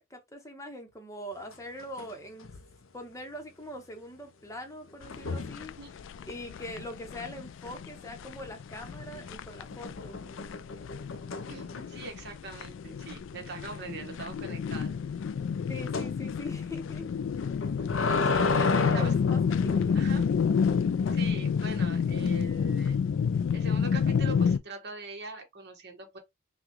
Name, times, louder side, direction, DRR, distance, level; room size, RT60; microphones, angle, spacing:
voice 1, 0.0-2.5 2.9-5.7 6.3-10.2 15.7-17.1 18.5-20.0, left 1 dB, 15° left, 0.9 m, -42 dB
sound 1, 1.5-2.1 2.4-2.8 5.1-5.6 8.8-9.2 9.7-12.1 12.5-12.6 13.0-13.1 13.5-13.6 15.9-16.1 17.4-19.9 20.7-21.1, left 3 dB, 85° left, 0.7 m, -32 dB
sound 2, 5.0-24.6, left 6 dB, 65° left, 0.3 m, -30 dB
voice 2, 11.5-14.9 18.1-18.5 18.9-19.1 19.9-20.3 21.1-23.0 23.5-26.2, right 4 dB, 55° right, 1.3 m, -42 dB
6.0 x 2.3 x 3.0 m
head